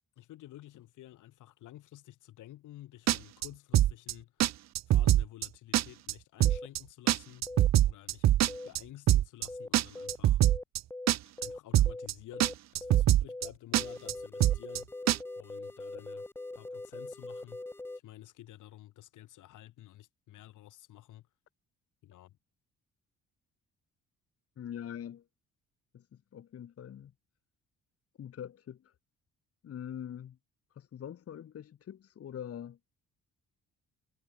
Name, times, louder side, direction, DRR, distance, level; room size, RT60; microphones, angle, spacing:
voice 1, 0.2-4.5 4.9-7.4 7.8-8.3 8.6-10.4 11.4-14.9 15.3-16.3 16.5-17.6 18.0-21.2 22.0-22.4, left 14 dB, 85° left, 3.4 m, -51 dB
sound 1, 3.1-3.5 3.7-4.1 4.4-4.5 4.7-5.5 5.7-6.1 6.4-6.8 7.1-8.8 9.1-9.5 9.7-10.8 11.1-11.5 11.7-12.1 12.4-12.5 12.7-13.5 13.7-14.1 14.4-14.8 15.1-15.2, right 13 dB, 60° right, 0.7 m, -24 dB
sound 2, 6.5-6.7 7.5-7.7 8.5-8.7 9.5-9.7 9.9-10.2 10.4-10.6 10.9-11.1 11.4-11.6 11.9-12.1 12.3-12.5 12.8-13.0 13.3-13.5 13.8-18.0, left 2 dB, 10° left, 0.5 m, -42 dB
voice 2, 24.6-25.2 25.9-26.0 26.3-27.1 28.2-28.9 29.6-30.4 30.7-32.8, left 9 dB, 50° left, 1.2 m, -43 dB
cardioid pair, 90°, 30 cm